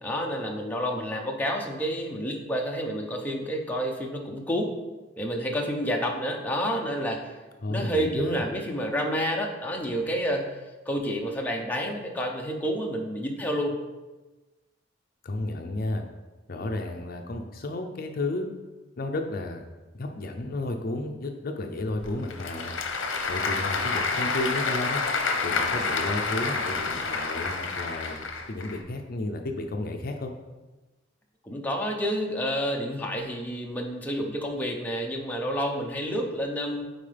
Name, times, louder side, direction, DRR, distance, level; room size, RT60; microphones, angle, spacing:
voice 1, 0.0-4.7 5.2-7.3 7.7-10.5 10.9-13.8 31.5-36.9, equal, 10° left, 0 dB, 0.7 m, -29 dB
voice 2, 7.6-8.4 15.2-16.0 16.5-18.5 19.0-19.7 19.9-22.7 23.3-25.0 25.4-30.3, left 2 dB, 50° left, 4 dB, 0.6 m, -32 dB
Applause / Crowd, 22.0-28.8, left 4 dB, 75° left, 0.8 m, -28 dB
9.1 x 4.3 x 3.4 m, 1.2 s
head